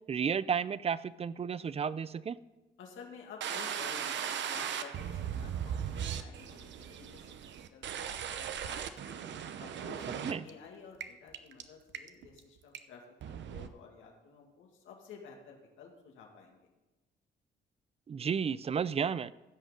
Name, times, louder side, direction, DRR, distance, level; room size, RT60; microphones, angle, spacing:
voice 1, 0.1-2.4 10.2-10.4 18.1-19.3, right 7 dB, 30° right, 18 dB, 0.4 m, -32 dB
voice 2, 2.8-7.4 7.7-9.2 9.6-16.6, left 5 dB, 85° left, 1 dB, 2.4 m, -52 dB
sound 1, 3.4-10.5 11.0-11.1 11.3-11.6 11.9-12.4 12.7-12.8 13.2-13.7, right 8 dB, 65° right, 0.8 m, -38 dB
15.5 x 6.3 x 5.2 m, 1.0 s
cardioid pair, 90°, 20 cm